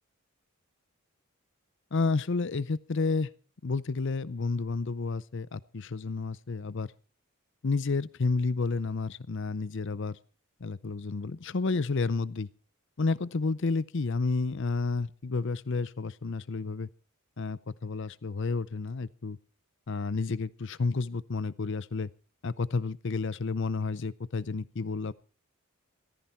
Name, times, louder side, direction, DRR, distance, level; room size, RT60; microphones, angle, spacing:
voice 1, 1.9-3.3 3.6-6.9 7.6-10.2 10.6-12.5 13.0-16.9 17.4-19.4 19.9-22.1 22.4-25.1, left 4 dB, 55° left, 19 dB, 0.6 m, -30 dB
15.0 x 14.0 x 4.4 m, 0.37 s
head